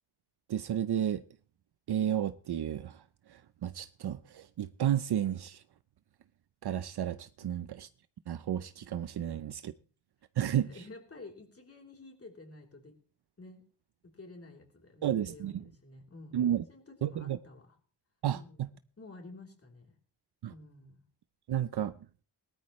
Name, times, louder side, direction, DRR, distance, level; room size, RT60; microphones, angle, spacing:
voice 1, 0.5-1.2 1.9-3.0 3.3-5.6 6.6-7.9 8.3-9.7 10.4-10.7 15.0-15.6 16.3-16.6 17.0-17.4 18.2-18.7 20.4-20.5 21.5-21.9, right 10 dB, 65° right, 0.7 m, -32 dB
voice 2, 10.4-12.9 13.4-13.6 14.1-17.8 18.3-18.6 19.0-19.9 20.5-21.0, left 2 dB, 35° left, 3.5 m, -51 dB
19.0 x 13.0 x 3.1 m
wide cardioid pair, 140°, 43 cm